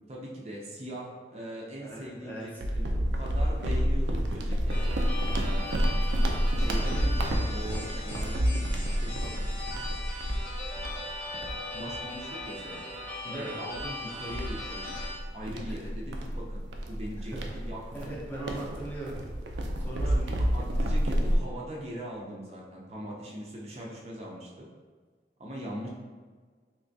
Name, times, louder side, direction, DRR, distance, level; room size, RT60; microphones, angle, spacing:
voice 1, 0.1-2.9 3.1-5.0 5.3-5.9 6.6-9.3 11.3-11.4 11.7-12.8 13.2-14.8 15.3-18.1 20.0-24.7 25.4-25.9, right 1 dB, 35° right, -3 dB, 0.5 m, -41 dB
voice 2, 1.8-2.6 13.3-13.5 15.7-15.8 17.3-17.4 17.9-19.2 19.8-20.2, right 1 dB, 10° left, -5 dB, 0.6 m, -39 dB
sound 1, 2.6-12.5 12.9-13.1 13.7-21.4, equal, 90° right, 0.4 m, -29 dB
sound 2, 4.7-15.2, left 1 dB, 90° left, 1.3 m, -39 dB
3.3 x 2.9 x 2.6 m, 1.5 s
head